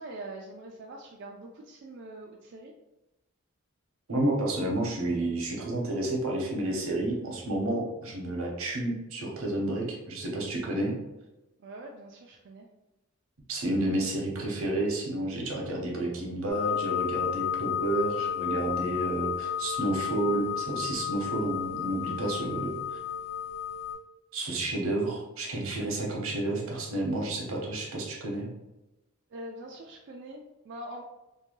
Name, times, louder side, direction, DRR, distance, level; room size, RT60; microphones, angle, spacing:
voice 1, 0.0-2.7 11.6-12.7 29.3-31.0, right 1 dB, 55° right, -1 dB, 0.3 m, -43 dB
voice 2, 4.1-10.9 13.5-22.8 24.3-28.5, right 1 dB, 85° right, -1 dB, 0.8 m, -30 dB
sound 1, 16.5-23.9, left 8 dB, 15° left, 0.9 m, -32 dB
2.7 x 2.2 x 2.9 m, 0.99 s
head